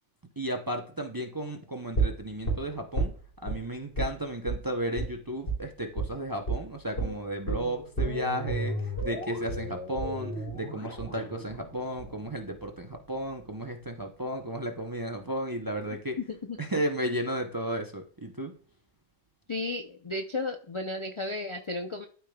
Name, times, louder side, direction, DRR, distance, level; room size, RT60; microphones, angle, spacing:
voice 1, 0.4-3.1 3.4-16.2 16.6-18.5, equal, 25° right, 3 dB, 0.5 m, -34 dB
sound 1, 1.9-3.6 4.0-4.2 4.5-4.6 5.0-5.1 5.5-5.6 6.0-6.2 6.5-6.6 7.0-13.0 13.3-13.4, right 2 dB, 55° left, 3.7 m, -32 dB
voice 2, 19.5-22.1, left 2 dB, 40° left, 4 dB, 0.4 m, -33 dB
12.5 x 5.0 x 2.3 m, 0.44 s
omnidirectional pair, 1.3 m